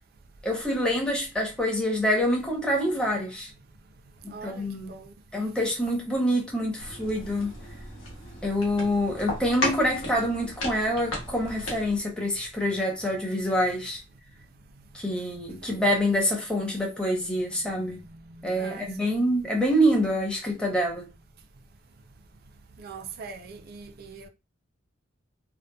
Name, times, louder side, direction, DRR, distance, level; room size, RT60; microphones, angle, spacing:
voice 1, 0.4-3.5 4.2-4.9 5.3-7.5 8.4-14.0 14.9-18.0 18.4-21.0, equal, 5° left, 0.6 m, -26 dB
voice 2, 4.2-5.1 14.7-15.0 15.6-15.7 17.6-19.1 22.7-24.3, right 4 dB, 50° right, 0.3 m, -43 dB
sound 1, 6.8-12.0, left 1 dB, 85° left, 1.0 m, -35 dB
2.7 x 2.1 x 2.2 m
head